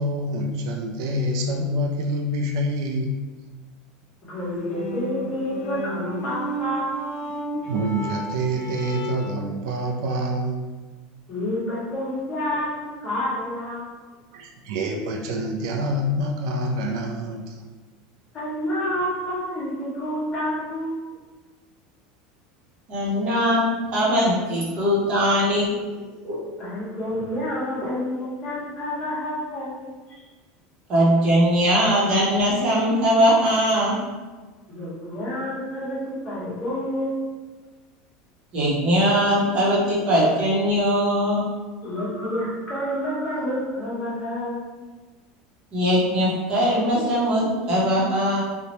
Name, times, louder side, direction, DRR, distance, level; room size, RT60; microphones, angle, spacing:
voice 1, 0.0-3.1 7.7-10.6 14.3-17.6, equal, 70° right, 1 dB, 0.3 m, -26 dB
voice 2, 4.2-7.2 11.3-13.9 18.3-21.1 26.6-30.2 34.7-37.5 41.8-44.6, left 1 dB, 25° left, -8 dB, 1.1 m, -29 dB
sound 1, 4.4-9.5, right 2 dB, 45° left, 0.5 m, -33 dB
voice 3, 22.9-23.6 23.9-25.7 26.2-26.4 27.8-27.9 30.9-33.9 38.5-41.4 45.7-48.4, equal, 35° right, -6 dB, 0.8 m, -20 dB
2.7 x 2.1 x 2.9 m, 1.3 s
supercardioid pair, 160°, 3 cm